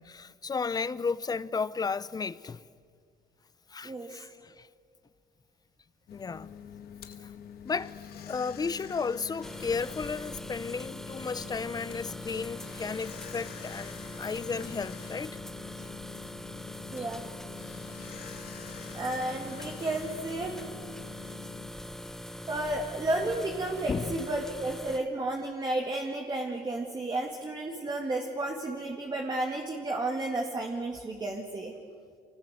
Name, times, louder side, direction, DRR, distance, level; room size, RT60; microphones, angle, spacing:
voice 1, 0.0-2.6 3.7-4.7 6.1-6.5 7.2-7.3 7.6-15.4 16.3-16.4 23.9-24.2, left 5 dB, 25° left, 0.6 m, -34 dB
voice 2, 3.8-4.2 16.9-17.2 18.9-20.6 22.5-31.7, right 2 dB, 25° right, 2.1 m, -32 dB
sound 1, 6.1-21.7, left 8 dB, 65° left, 1.8 m, -46 dB
sound 2, 9.4-25.0, left 1 dB, ahead, 1.1 m, -42 dB
25.0 x 19.5 x 7.9 m
cardioid pair, 110°, 17 cm